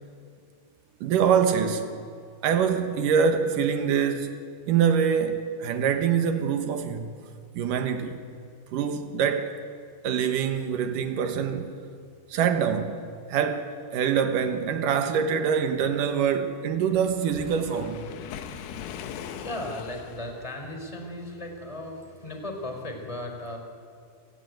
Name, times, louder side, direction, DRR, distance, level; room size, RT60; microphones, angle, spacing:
voice 1, 1.0-1.9 2.4-4.4 4.7-7.1 7.5-8.2 8.7-9.5 10.0-11.8 12.3-13.0 13.3-18.1, right 7 dB, 70° right, 2.0 m, -25 dB
Waves surf, 17.1-20.4, left 8 dB, 85° left, 4.1 m, -40 dB
voice 2, 18.1-23.6, left 1 dB, 5° left, 3.3 m, -37 dB
30.0 x 20.0 x 9.3 m
omnidirectional pair, 5.9 m